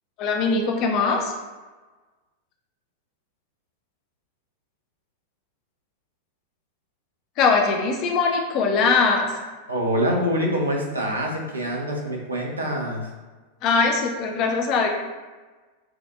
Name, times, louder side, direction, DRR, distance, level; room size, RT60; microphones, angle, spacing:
voice 1, 0.2-1.3 7.4-9.3 13.6-14.9, left 4 dB, 40° left, 2 dB, 0.6 m, -21 dB
voice 2, 9.7-13.1, equal, 80° right, -1 dB, 0.8 m, -25 dB
6.1 x 2.5 x 2.5 m, 1.3 s
figure-of-eight pair, 90°, 0 cm